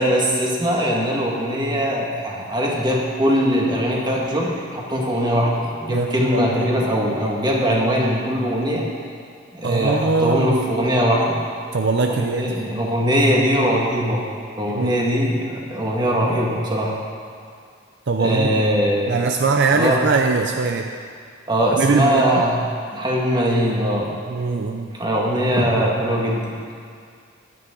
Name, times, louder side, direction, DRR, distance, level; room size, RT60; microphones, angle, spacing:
voice 1, 0.0-8.9 9.5-11.4 12.1-14.3 14.6-17.0 18.2-19.1 19.7-20.1 21.5-22.6 22.9-24.1 24.9-26.6, equal, 20° right, -3 dB, 1.9 m, -21 dB
voice 2, 5.9-6.6 9.6-10.6 11.7-12.5 14.7-15.1 18.1-18.6 19.1-20.9 21.8-22.4 24.3-24.9, right 4 dB, 55° right, 4 dB, 0.6 m, -21 dB
15.5 x 11.0 x 3.9 m, 2.2 s
head